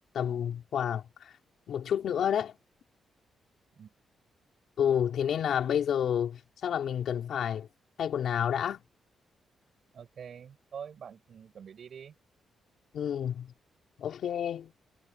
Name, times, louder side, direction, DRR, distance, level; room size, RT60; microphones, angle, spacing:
voice 1, 0.1-1.3 1.7-2.6 4.8-7.7 8.0-8.8 12.9-13.5 14.0-14.7, left 9 dB, 65° left, 4.8 m, -29 dB
voice 2, 9.9-12.1, right 7 dB, 50° right, 7.9 m, -45 dB
wide cardioid pair, 170°, 0 cm